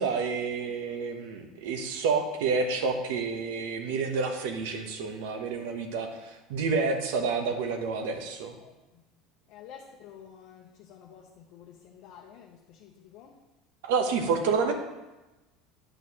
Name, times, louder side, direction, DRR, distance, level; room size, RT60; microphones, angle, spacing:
voice 1, 0.0-8.5 13.8-14.7, right 4 dB, 85° right, 5 dB, 0.9 m, -29 dB
voice 2, 9.5-11.2 11.5-12.5 12.8-13.3, left 8 dB, 65° left, 0 dB, 0.7 m, -49 dB
8.9 x 6.3 x 2.9 m, 1.1 s
supercardioid pair, 125°, 0 cm